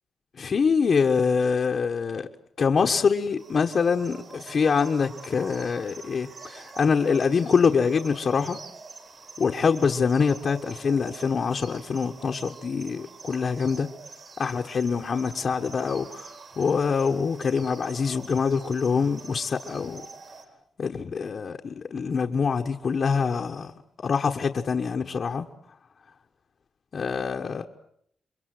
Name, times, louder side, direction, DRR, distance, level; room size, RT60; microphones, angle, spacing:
voice 1, 0.4-2.3 2.6-8.6 9.4-13.9 14.4-20.0 20.8-23.7 24.0-25.4 26.9-27.6, left 5 dB, 40° left, 1.3 m, -25 dB
sound 1, 3.4-20.5, right 4 dB, 45° right, 3.8 m, -45 dB
28.5 x 23.5 x 7.8 m
wide cardioid pair, 175°, 0 cm